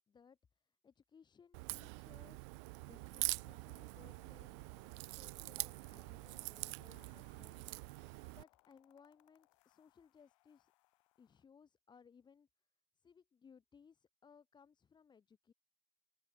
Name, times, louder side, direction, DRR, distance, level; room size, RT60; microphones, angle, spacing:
voice 1, 0.1-4.7 5.0-10.7 11.2-12.5 13.0-15.5, left 6 dB, 25° left, 2.1 m, -65 dB
Crack, 1.5-8.4, right 32 dB, 60° right, 0.4 m, -45 dB
sound 1, 2.7-11.4, left 23 dB, 65° left, 5.4 m, -72 dB
open air
hypercardioid pair, 80°, 18 cm